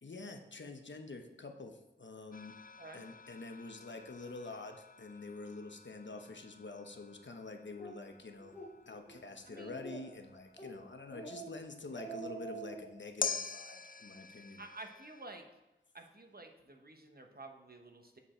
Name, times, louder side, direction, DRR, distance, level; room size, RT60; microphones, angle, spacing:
voice 1, 0.0-2.5 2.9-8.5 8.9-14.6, left 3 dB, 60° left, 5 dB, 0.9 m, -47 dB
sound 1, 2.3-11.7 13.2-15.3, left 5 dB, 45° left, 0.4 m, -46 dB
Speech, 7.8-7.9 8.4-8.7 9.1-9.2 9.5-10.2 10.6-10.8 11.1-11.5 11.8-12.9, right 3 dB, 10° left, 2.0 m, -45 dB
voice 2, 9.5-9.8 14.6-15.4 15.9-18.2, right 2 dB, 50° right, 3 dB, 1.1 m, -51 dB
8.4 x 5.0 x 4.4 m, 1.0 s
wide cardioid pair, 55°, 21 cm